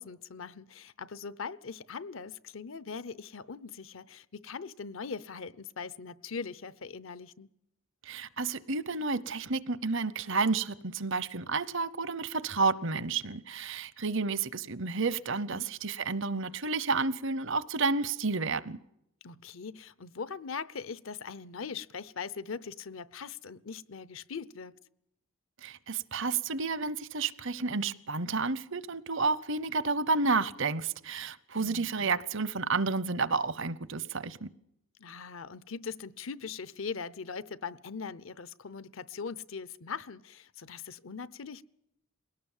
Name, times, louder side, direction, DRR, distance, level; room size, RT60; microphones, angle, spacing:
voice 1, 0.0-7.5 15.3-15.7 19.2-24.8 31.6-32.1 35.0-41.6, left 5 dB, 70° left, 0.8 m, -41 dB
voice 2, 8.1-18.8 25.6-34.5, right 4 dB, 65° right, 0.8 m, -31 dB
21.5 x 18.0 x 7.3 m
head